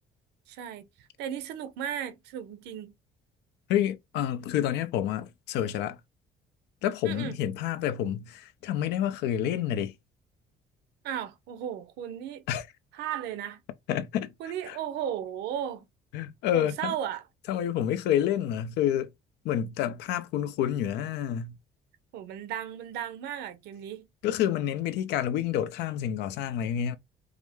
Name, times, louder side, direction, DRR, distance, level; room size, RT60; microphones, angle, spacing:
voice 1, 0.5-0.9 1.2-2.9 7.0-7.4 11.0-12.4 12.9-13.6 14.4-15.9 16.5-17.2 22.1-24.1, right 10 dB, 80° right, 0.8 m, -35 dB
voice 2, 3.7-6.0 6.8-9.9 12.5-12.6 13.9-14.3 14.7-14.8 16.1-16.9 17.5-19.1 19.4-21.6 24.2-27.0, left 10 dB, 85° left, 0.6 m, -28 dB
4.8 x 2.1 x 3.5 m
cardioid pair, 110°, 17 cm